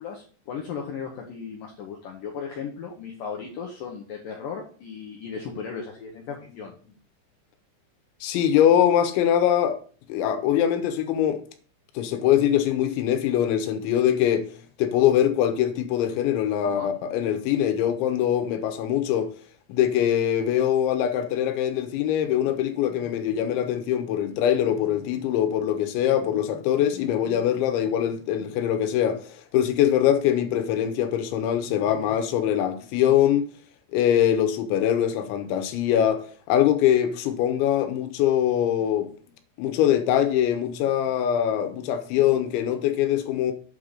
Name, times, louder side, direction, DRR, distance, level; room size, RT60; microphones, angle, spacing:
voice 1, 0.0-6.7 16.6-16.9, left 6 dB, 70° left, 2.1 m, -36 dB
voice 2, 8.2-9.8 10.1-11.4 12.0-14.5 14.8-19.3 19.7-33.5 33.9-36.2 36.5-39.1 39.6-43.5, left 10 dB, 90° left, 3.3 m, -23 dB
8.4 x 3.7 x 6.5 m
omnidirectional pair, 5.2 m